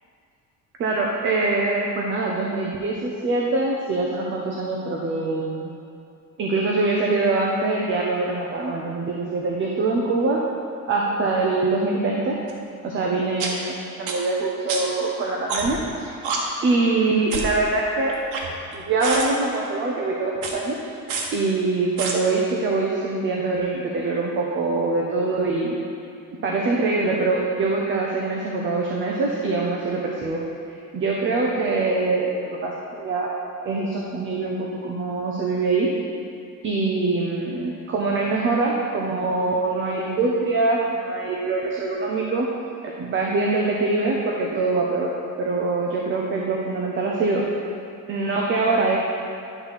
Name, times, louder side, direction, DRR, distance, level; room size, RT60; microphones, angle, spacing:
voice 1, 0.8-5.7 6.4-10.4 10.9-12.4 12.8-16.2 16.6-18.2 18.7-20.8 21.3-25.8 26.4-30.4 30.9-33.3 33.6-35.9 36.6-42.5 42.8-47.5 48.1-49.0, right 3 dB, 35° right, -2 dB, 0.8 m, -24 dB
sound 1, 12.5-12.6 13.4-13.5 14.1-14.2 14.7-14.8 15.5-15.8 16.2-16.4 17.3-17.5 18.1-18.7 19.0-19.3 20.4-20.5 21.1-21.2 22.0-22.1, right 5 dB, 85° right, 1.3 m, -27 dB
10.0 x 4.1 x 6.0 m, 2.6 s
cardioid pair, 160°, 34 cm